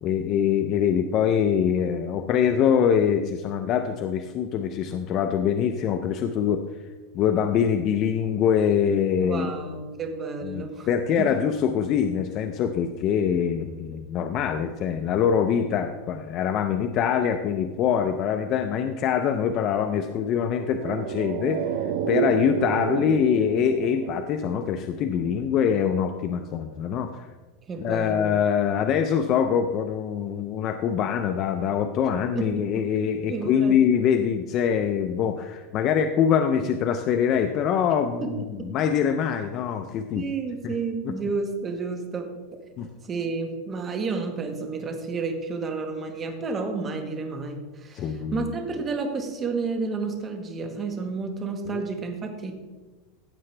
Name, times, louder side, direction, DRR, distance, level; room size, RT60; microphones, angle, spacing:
voice 1, 0.0-6.6 7.1-9.5 10.4-21.6 22.1-27.3 27.8-40.2 40.6-40.7 41.1-41.2 42.8-42.9 47.9-48.5 51.7-51.8, left 8 dB, 40° left, 7 dB, 0.5 m, -24 dB
voice 2, 9.2-10.9 11.2-11.3 27.7-28.4 32.3-33.8 38.2-38.7 40.1-42.6 43.1-52.5, right 4 dB, 20° right, 5 dB, 1.4 m, -31 dB
sound 1, 20.5-25.1 25.3-25.4, right 8 dB, 70° right, 0.7 m, -30 dB
15.0 x 7.7 x 3.3 m, 1.3 s
supercardioid pair, 150°, 0 cm